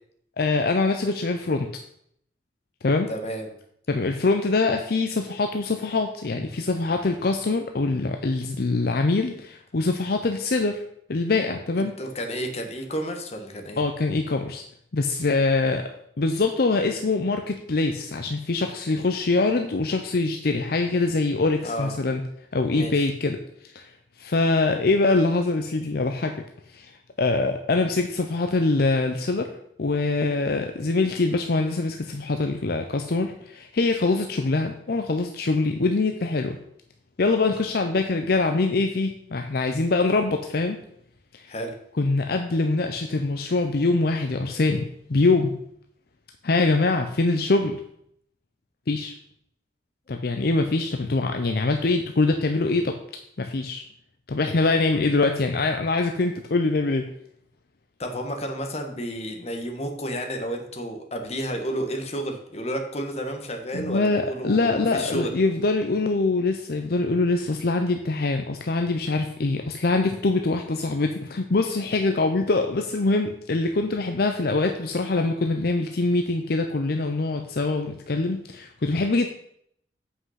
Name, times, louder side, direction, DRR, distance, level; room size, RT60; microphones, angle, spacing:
voice 1, 0.4-1.7 2.8-3.1 3.9-10.8 11.1-11.9 13.8-14.6 14.9-15.9 16.2-22.2 22.5-23.4 23.7-23.9 24.2-26.4 26.7-26.9 27.2-29.5 29.8-36.6 37.2-40.8 41.3-41.5 42.0-44.8 45.1-45.5 46.4-47.8 48.9-49.1 50.1-52.9 53.4-53.8 54.3-57.0 63.7-79.3, left 3 dB, 60° left, 5 dB, 0.6 m, -24 dB
voice 2, 3.1-3.5 11.8-13.8 21.6-21.9 22.7-23.1 41.5-41.7 58.0-65.3, equal, 40° left, 4 dB, 1.3 m, -31 dB
7.8 x 5.7 x 5.7 m, 0.70 s
head